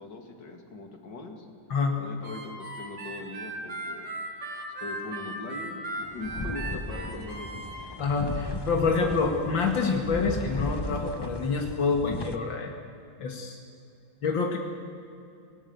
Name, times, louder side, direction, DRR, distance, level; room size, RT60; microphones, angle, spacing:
voice 1, 0.0-1.5 2.0-4.2 4.5-7.7, left 2 dB, 65° left, 4 dB, 3.1 m, -41 dB
Harmonica, 2.2-7.8, right 1 dB, 75° right, 8.2 m, -37 dB
sound 1, 6.1-12.4, left 2 dB, 15° left, 0.9 m, -36 dB
voice 2, 8.0-12.7 13.2-13.6 14.2-14.6, left 4 dB, 90° left, 2 dB, 2.6 m, -27 dB
28.0 x 18.5 x 8.1 m, 2.5 s
omnidirectional pair, 2.0 m